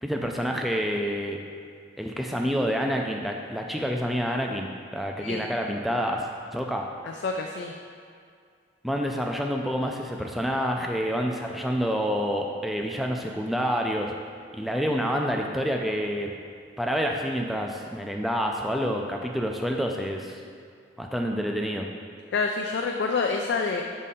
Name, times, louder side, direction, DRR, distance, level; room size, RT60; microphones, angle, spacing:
voice 1, 0.0-1.4 2.0-4.7 4.9-6.2 6.5-6.9 8.8-14.1 14.5-16.3 16.8-20.4 21.0-21.9, equal, ahead, 1 dB, 0.3 m, -28 dB
voice 2, 7.0-7.7 22.3-23.8, left 4 dB, 75° left, 2 dB, 0.3 m, -27 dB
6.4 x 4.2 x 3.6 m, 2.3 s
head